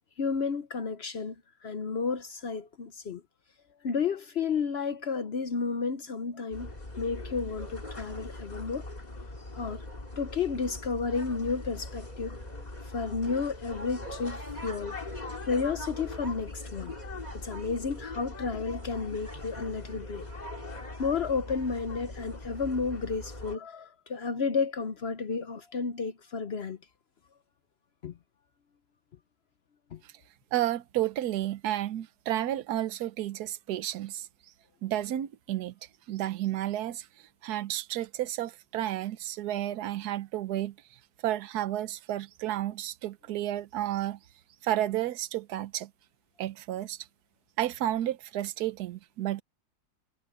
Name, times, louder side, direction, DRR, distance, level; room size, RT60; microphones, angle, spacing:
voice 1, 0.2-1.4 1.6-3.2 3.8-6.7 7.0-8.9 9.5-9.8 10.2-12.4 12.8-15.0 15.5-16.9 17.3-20.3 21.0-26.8 28.0-28.1 29.9-30.0, left 5 dB, 55° left, 0.7 m, -32 dB
sound 1, 6.5-23.6, left 2 dB, 20° left, 2.7 m, -41 dB
voice 2, 30.5-34.3 34.8-35.7 36.1-37.1 37.4-40.7 41.2-44.2 44.6-45.9 46.4-47.1 47.6-49.4, right 13 dB, 65° right, 1.2 m, -31 dB
omnidirectional pair, 2.0 m